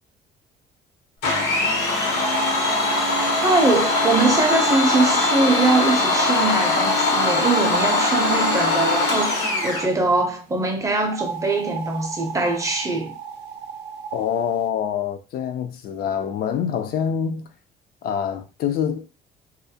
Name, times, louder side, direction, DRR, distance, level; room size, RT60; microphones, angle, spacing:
Domestic sounds home sounds, 1.2-9.9, left 3 dB, 90° left, 0.9 m, -21 dB
sound 1, 2.1-6.0 6.7-10.0 11.0-14.3, right 6 dB, 80° right, 0.5 m, -32 dB
voice 1, 3.4-13.1, right 3 dB, 20° right, 0.5 m, -22 dB
voice 2, 14.1-17.5 18.0-19.1, left 8 dB, 65° left, 0.4 m, -25 dB
2.3 x 2.0 x 2.7 m
cardioid pair, 110°, 17 cm